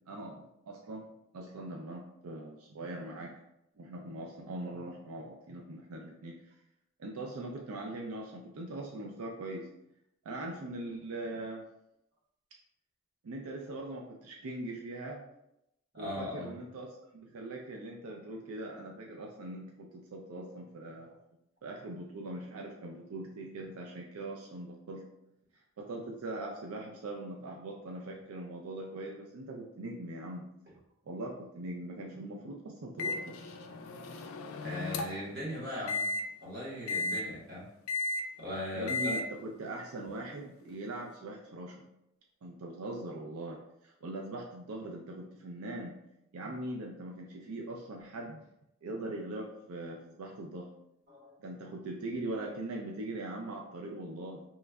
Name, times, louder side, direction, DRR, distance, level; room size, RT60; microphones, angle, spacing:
voice 1, 0.1-1.1 1.3-3.3 3.8-6.5 7.0-9.7 10.3-11.6 13.2-15.2 16.0-16.9 17.1-21.2 21.6-25.0 25.8-30.4 31.1-33.4 38.8-41.8 42.4-46.0 46.3-48.4 48.8-50.7 51.4-54.4, right 2 dB, 90° right, 0 dB, 0.4 m, -41 dB
voice 2, 15.9-16.5 34.6-36.1 36.4-37.7 38.4-39.2 51.1-51.3, left 1 dB, 50° right, -5 dB, 1.1 m, -39 dB
Microwave oven, 33.0-35.3 35.9-36.2 36.9-37.2 37.9-38.2 38.9-39.2, left 3 dB, 75° left, 0.3 m, -34 dB
3.0 x 2.2 x 3.4 m, 0.82 s
head